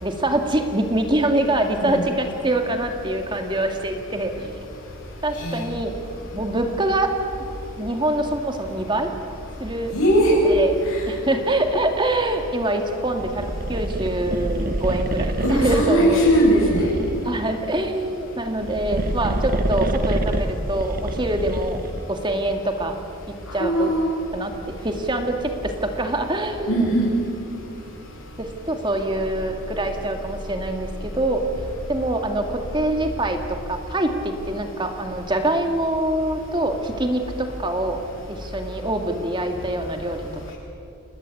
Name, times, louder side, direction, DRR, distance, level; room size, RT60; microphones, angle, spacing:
voice 1, 0.0-4.5 5.2-5.9 6.3-7.1 7.8-9.1 9.6-10.0 10.3-10.7 11.1-16.3 16.8-21.8 22.1-23.0 23.3-24.0 24.3-26.9 28.4-31.4 31.9-38.0 38.3-40.2, right 1 dB, 20° right, 4 dB, 2.2 m, -25 dB
voice 2, 9.9-10.3 10.9-11.0 15.4-16.9 23.6-24.0 26.7-27.1, right 1 dB, 85° left, -4 dB, 5.6 m, -19 dB
sound 1, 13.1-17.6 18.5-22.1, right 1 dB, 40° right, 1.3 m, -27 dB
29.5 x 20.0 x 8.6 m, 2.7 s
head